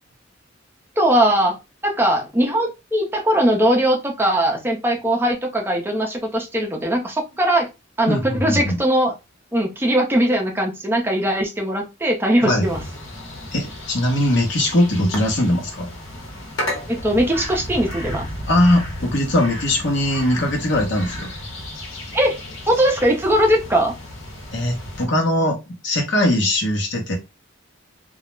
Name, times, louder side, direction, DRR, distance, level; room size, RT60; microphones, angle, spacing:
voice 1, 1.0-1.6 1.8-7.7 8.0-9.1 9.5-12.8 16.9-18.3 22.1-22.4 22.7-23.9, right 1 dB, 10° right, 0.5 m, -20 dB
voice 2, 8.1-8.8 12.4-12.6 13.5-15.9 18.5-21.3 24.5-25.6 25.8-27.2, left 1 dB, 65° left, 0.8 m, -20 dB
sound 1, 12.6-25.0, left 1 dB, 85° left, 1.0 m, -33 dB
2.3 x 2.0 x 3.0 m
head